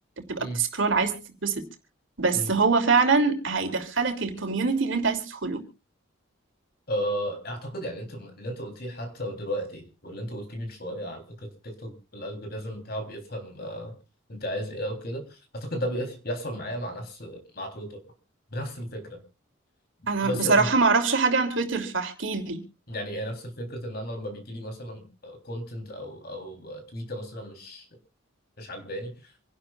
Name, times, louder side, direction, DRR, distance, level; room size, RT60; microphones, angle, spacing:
voice 1, 0.3-1.1 1.4-1.6 2.2-5.6 20.1-22.6, right 4 dB, 70° right, 5 dB, 3.1 m, -24 dB
voice 2, 6.9-14.0 14.3-18.0 18.5-19.2 20.2-20.7 22.9-27.9 28.6-29.3, equal, 50° left, 5 dB, 3.7 m, -34 dB
27.0 x 11.5 x 2.5 m, 0.32 s
head